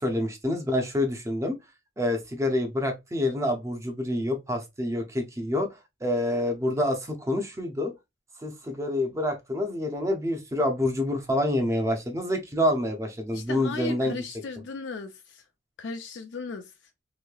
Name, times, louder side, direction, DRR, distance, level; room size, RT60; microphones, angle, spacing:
voice 1, 0.0-1.6 2.0-5.7 6.0-7.9 8.4-14.2, left 1 dB, 15° right, 0.6 m, -27 dB
voice 2, 13.3-15.4 15.8-16.7, left 3 dB, 70° left, 0.4 m, -36 dB
3.0 x 2.7 x 2.2 m
head